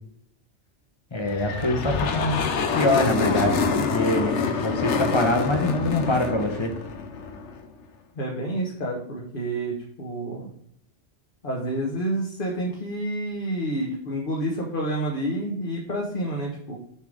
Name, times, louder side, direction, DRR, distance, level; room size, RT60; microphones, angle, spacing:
voice 1, 1.1-2.4 2.7-6.7, left 1 dB, 25° left, 4 dB, 1.2 m, -24 dB
sound 1, 1.2-7.6, left 5 dB, 85° left, 1.1 m, -26 dB
voice 2, 8.1-10.5 11.4-16.8, right 1 dB, 50° left, -2 dB, 1.4 m, -29 dB
7.1 x 3.8 x 6.4 m, 0.72 s
omnidirectional pair, 1.1 m